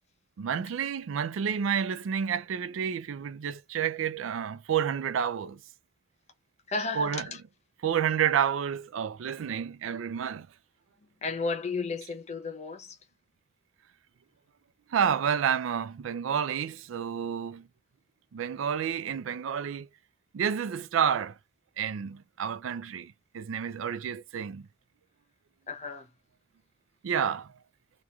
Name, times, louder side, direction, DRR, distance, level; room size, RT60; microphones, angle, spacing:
voice 1, 0.4-5.6 7.0-7.2 7.8-10.5 14.9-17.7 18.3-19.9 20.3-21.4 21.8-24.7 27.0-27.5, right 8 dB, 90° right, 0.4 m, -30 dB
voice 2, 6.7-7.4 11.2-13.0 25.7-26.1, left 4 dB, 35° left, 0.7 m, -33 dB
3.0 x 2.4 x 2.3 m
head